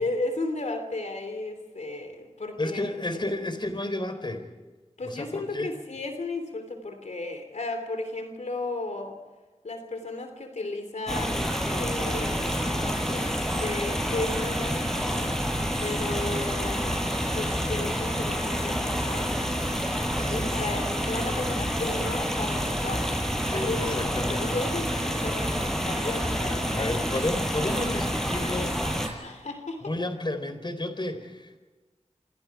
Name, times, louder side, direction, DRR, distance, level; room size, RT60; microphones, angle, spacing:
voice 1, 0.0-2.9 5.0-9.2 9.6-15.4 15.8-17.0 17.3-19.6 20.1-23.1 23.5-27.0 29.2-30.0, left 2 dB, 90° left, 6 dB, 3.0 m, -34 dB
voice 2, 2.6-4.5 5.0-5.7 20.2-20.6 23.4-24.4 26.0-26.1 26.7-28.8 29.8-31.6, left 1 dB, 40° left, 9 dB, 3.9 m, -32 dB
sound 1, 11.1-29.1, equal, 5° left, 5.6 m, -28 dB
27.5 x 26.5 x 4.8 m, 1.3 s
wide cardioid pair, 50°, 12 cm